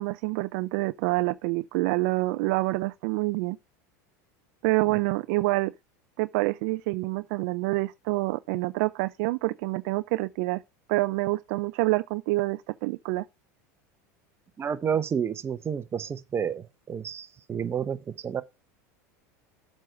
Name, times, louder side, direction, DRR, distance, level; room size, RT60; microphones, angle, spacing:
voice 1, 0.0-3.6 4.6-5.7 6.2-10.6 10.9-13.2, right 22 dB, 65° right, 0.4 m, -27 dB
voice 2, 14.6-18.4, right 7 dB, 25° right, 0.9 m, -30 dB
7.6 x 5.3 x 4.6 m
supercardioid pair, 105°, 9 cm